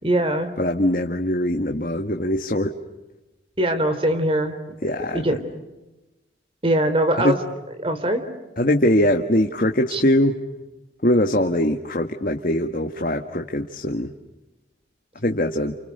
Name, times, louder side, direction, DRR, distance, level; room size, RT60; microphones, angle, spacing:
voice 1, 0.0-0.5 3.6-4.6 5.1-5.4 6.6-7.4 7.8-8.3 9.9-10.0, right 1 dB, 30° right, 9 dB, 3.7 m, -21 dB
voice 2, 0.6-2.7 4.8-5.4 7.2-7.4 8.6-10.4 11.0-14.1 15.2-15.7, left 1 dB, 50° left, 3 dB, 1.7 m, -22 dB
30.0 x 29.5 x 6.8 m, 1.0 s
head